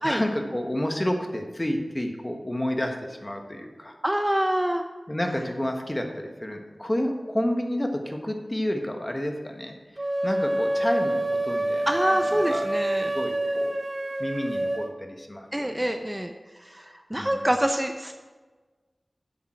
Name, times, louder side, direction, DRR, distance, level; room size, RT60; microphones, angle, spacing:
voice 1, 0.0-3.9 5.1-9.7 10.2-12.7 13.1-13.7 14.2-15.9 17.1-17.4, left 1 dB, 25° left, 3 dB, 1.4 m, -30 dB
voice 2, 4.0-4.8 11.9-13.1 15.5-18.1, equal, 15° right, 5 dB, 0.6 m, -26 dB
sound 1, 10.0-14.9, right 1 dB, 40° right, 0.9 m, -27 dB
11.5 x 7.4 x 4.4 m, 1.3 s
wide cardioid pair, 55°, 0 cm